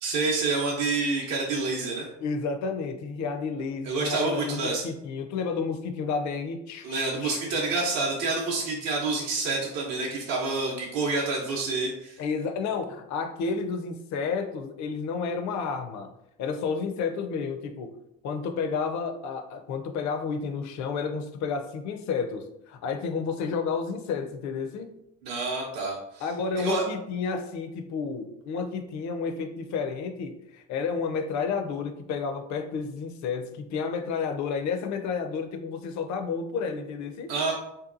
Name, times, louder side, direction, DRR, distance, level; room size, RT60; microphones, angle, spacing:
voice 1, 0.0-2.1 3.8-4.9 6.8-12.2 25.2-26.3 26.6-26.8 37.3-37.5, right 3 dB, 60° right, -2 dB, 0.7 m, -28 dB
voice 2, 2.2-7.4 12.2-16.1 16.4-18.0 18.2-25.0 26.2-37.3, left 5 dB, 45° left, 7 dB, 0.5 m, -31 dB
2.7 x 2.2 x 2.5 m, 0.82 s
hypercardioid pair, 75°, 39 cm